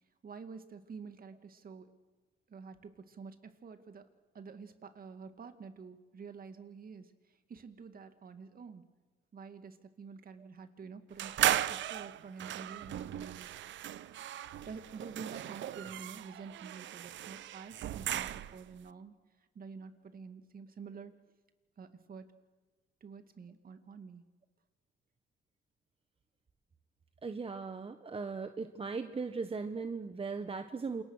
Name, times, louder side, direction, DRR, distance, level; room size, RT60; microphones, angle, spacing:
voice 1, 0.2-1.9 2.5-4.1 4.3-8.8 9.3-13.6 14.6-19.1 19.5-21.1 21.8-22.3 23.0-24.2, right 5 dB, 45° right, 9 dB, 2.2 m, -48 dB
sound 1, 11.2-18.7, right 12 dB, 70° right, 0.8 m, -36 dB
voice 2, 27.2-31.0, right 4 dB, 30° right, 8 dB, 1.1 m, -38 dB
28.0 x 22.5 x 6.4 m, 1.2 s
cardioid pair, 90°, 20 cm